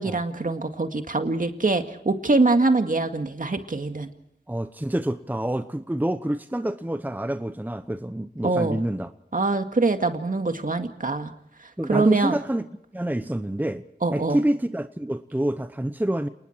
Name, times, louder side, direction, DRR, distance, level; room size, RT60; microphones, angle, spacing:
voice 1, 0.0-4.1 8.4-8.8 9.3-11.3 11.9-12.4 14.0-14.4, right 3 dB, 50° right, 6 dB, 2.0 m, -23 dB
voice 2, 4.5-9.1 11.8-12.7 12.9-13.9 14.1-16.3, right 1 dB, 10° right, 11 dB, 0.9 m, -27 dB
29.0 x 20.0 x 4.6 m, 0.79 s
cardioid pair, 45°, 18 cm